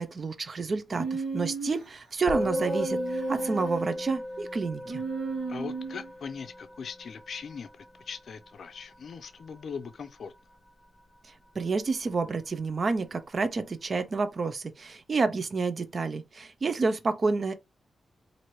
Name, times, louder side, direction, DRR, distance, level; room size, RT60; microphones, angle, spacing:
voice 1, 0.0-5.0 11.5-17.5, right 4 dB, 35° right, 0.5 m, -29 dB
Human voice, 0.9-1.9 2.4-4.0 4.8-6.1, right 4 dB, 75° right, 1.2 m, -34 dB
Musical instrument, 2.3-11.8, left 1 dB, 15° left, 0.8 m, -37 dB
voice 2, 5.5-10.3, left 6 dB, 55° left, 0.4 m, -40 dB
4.4 x 2.6 x 3.0 m
wide cardioid pair, 175°, 0 cm